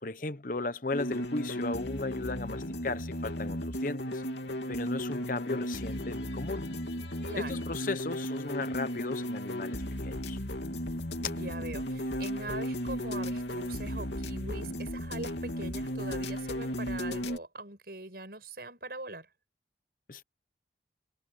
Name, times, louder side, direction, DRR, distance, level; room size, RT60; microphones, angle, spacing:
voice 1, 0.0-4.2 4.7-6.7 7.4-10.4 20.1-20.2, left 3 dB, 50° left, 0.9 m, -36 dB
sound 1, 0.9-17.4, equal, 75° left, 3.0 m, -35 dB
voice 2, 11.2-19.3, right 2 dB, 55° right, 7.2 m, -42 dB
head